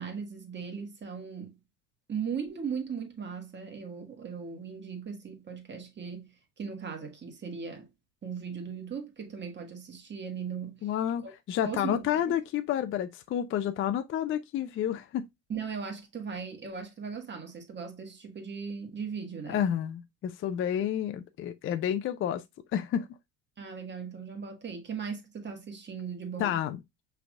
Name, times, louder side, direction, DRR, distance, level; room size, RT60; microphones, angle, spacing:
voice 1, 0.0-1.5 2.1-7.9 8.2-10.9 11.2-11.3 11.6-12.1 15.5-19.7 23.6-26.6, right 6 dB, 30° right, 1.6 m, -38 dB
voice 2, 10.8-15.3 19.5-22.4 22.7-23.1 26.4-26.8, left 10 dB, 35° left, 0.5 m, -30 dB
5.7 x 3.4 x 2.4 m
supercardioid pair, 85°, 39 cm